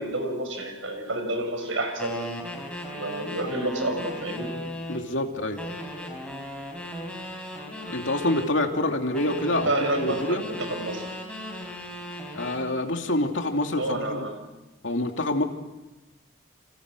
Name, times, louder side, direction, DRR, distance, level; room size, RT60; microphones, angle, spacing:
voice 1, 0.0-2.2 2.9-4.6 9.4-11.0 13.8-14.5, right 1 dB, 80° right, 5 dB, 6.5 m, -29 dB
sound 1, 2.0-5.1 5.6-8.5 9.1-12.7, equal, 5° left, 4.9 m, -36 dB
voice 2, 4.9-5.6 7.9-10.4 12.3-14.3 14.8-15.4, left 1 dB, 70° left, 3 dB, 2.7 m, -26 dB
29.5 x 26.0 x 6.3 m, 1.0 s
head